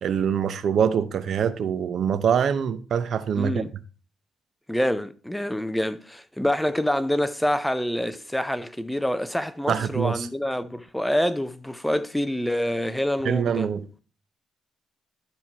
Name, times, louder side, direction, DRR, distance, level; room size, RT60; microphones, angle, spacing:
voice 1, 0.0-3.6 9.7-10.3 13.2-13.9, right 7 dB, 60° right, 0.8 m, -24 dB
voice 2, 3.4-3.7 4.7-13.7, left 1 dB, 5° left, 0.5 m, -26 dB
12.5 x 4.5 x 4.5 m
cardioid pair, 90°, 0 cm